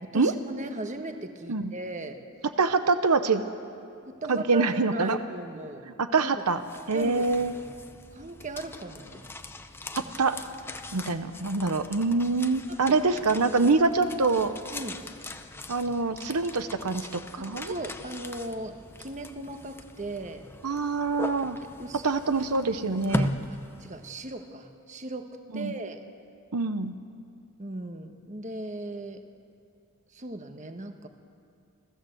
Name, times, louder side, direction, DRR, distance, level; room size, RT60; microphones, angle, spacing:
voice 1, 0.0-2.2 4.1-5.9 6.2-6.4 6.9-7.3 8.1-9.3 10.0-10.1 12.7-13.0 14.7-15.0 17.4-20.4 21.8-22.4 22.7-26.0 27.6-29.2 30.1-31.1, right 2 dB, 35° right, 6 dB, 1.3 m, -38 dB
voice 2, 2.6-3.4 4.3-5.2 6.0-6.6 6.9-7.5 10.0-10.4 10.9-14.5 15.7-17.7 20.6-21.6 22.0-23.3 25.5-25.7 26.5-26.9, right 3 dB, 90° right, 10 dB, 0.9 m, -25 dB
sound 1, 6.4-24.4, left 1 dB, 10° left, 0.7 m, -39 dB
29.5 x 14.0 x 7.9 m, 2.4 s
head